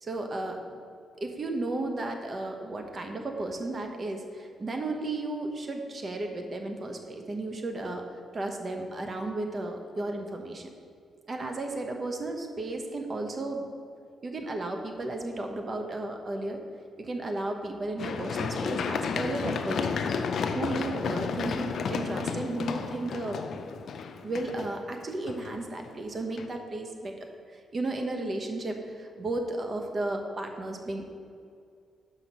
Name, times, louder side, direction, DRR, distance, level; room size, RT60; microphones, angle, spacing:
voice 1, 0.0-0.7 1.2-8.0 8.3-10.7 11.3-13.7 14.2-16.6 17.0-20.0 20.5-23.4 24.2-27.1 27.5-31.0, right 2 dB, 45° right, 4 dB, 1.1 m, -34 dB
Run, 18.0-25.9 26.4-26.5, left 5 dB, 70° left, 0.5 m, -32 dB
6.1 x 5.8 x 5.6 m, 2.4 s
cardioid pair, 65°, 0 cm